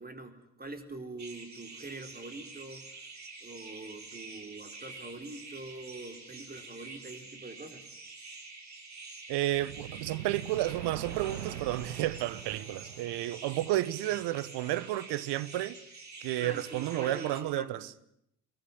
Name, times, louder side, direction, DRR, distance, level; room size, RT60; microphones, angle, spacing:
voice 1, 0.0-2.9 3.4-7.9 14.1-14.2 16.4-17.8, right 2 dB, 20° right, 4.5 m, -44 dB
sound 1, 1.2-17.4, right 3 dB, 35° right, 5.3 m, -47 dB
voice 2, 9.3-15.8 16.2-17.9, right 15 dB, 60° right, 1.2 m, -32 dB
sound 2, 9.5-13.5, right 12 dB, 85° right, 1.0 m, -42 dB
23.0 x 19.5 x 9.9 m
hypercardioid pair, 60°, 45 cm